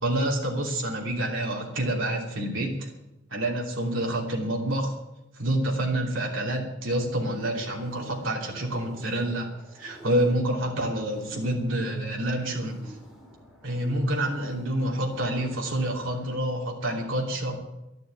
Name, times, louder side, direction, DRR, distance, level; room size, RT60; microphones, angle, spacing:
voice 1, 0.0-2.9 3.3-4.9 5.3-9.5 9.7-13.0 13.6-17.6, right 1 dB, 70° right, -1 dB, 3.0 m, -28 dB
sound 1, 7.3-16.4, right 1 dB, ahead, 3.4 m, -49 dB
12.0 x 12.0 x 9.0 m, 0.93 s
head